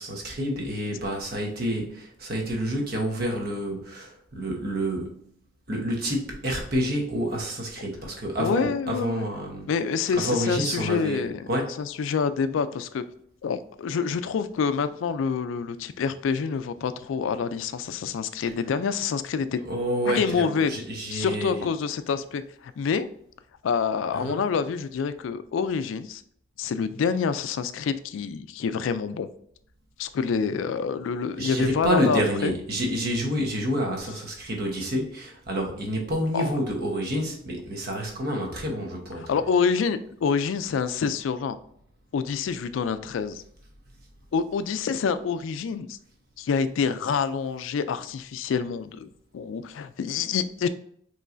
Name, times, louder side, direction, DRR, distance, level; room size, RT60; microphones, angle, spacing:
voice 1, 0.0-5.2 5.7-9.7 10.2-11.8 19.6-21.6 24.1-24.4 31.4-39.3, equal, 50° right, 1 dB, 1.0 m, -28 dB
voice 2, 8.4-9.3 9.7-11.5 11.8-13.0 13.4-19.6 20.1-20.7 21.1-23.1 23.6-26.2 26.6-29.3 30.0-32.5 36.3-36.5 39.2-41.6 42.1-43.4 44.3-46.0 46.4-49.1 49.3-50.7, left 6 dB, 75° left, 13 dB, 0.3 m, -27 dB
5.3 x 3.1 x 2.5 m, 0.66 s
head